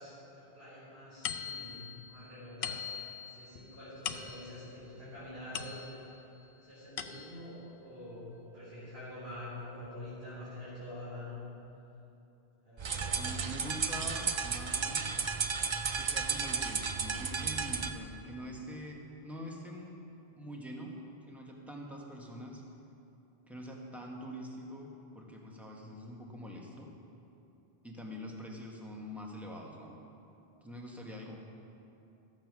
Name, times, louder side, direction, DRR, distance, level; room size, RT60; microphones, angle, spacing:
voice 1, 0.0-2.9 3.2-6.1 6.6-11.4 12.6-13.3, left 1 dB, 85° right, -11 dB, 3.8 m, -46 dB
sound 1, 1.2-6.2 6.7-7.6, left 7 dB, 65° left, 0.8 m, -42 dB
sound 2, 12.8-18.0, right 5 dB, 45° right, 0.4 m, -33 dB
voice 2, 13.1-15.4 16.0-20.0 20.4-20.9 21.2-22.6 23.5-26.9 27.8-30.0 30.6-31.4, equal, ahead, -2 dB, 1.4 m, -44 dB
14.0 x 7.4 x 6.1 m, 2.8 s
omnidirectional pair, 1.0 m